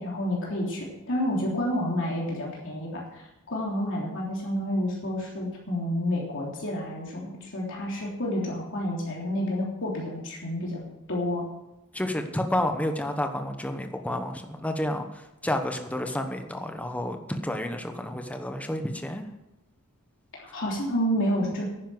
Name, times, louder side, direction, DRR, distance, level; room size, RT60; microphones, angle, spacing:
voice 1, 0.0-10.8 11.1-11.4 20.4-21.6, equal, 60° left, -3 dB, 3.4 m, -29 dB
voice 2, 11.9-19.2, left 1 dB, 5° left, 5 dB, 1.1 m, -30 dB
10.5 x 10.0 x 7.8 m, 0.94 s
head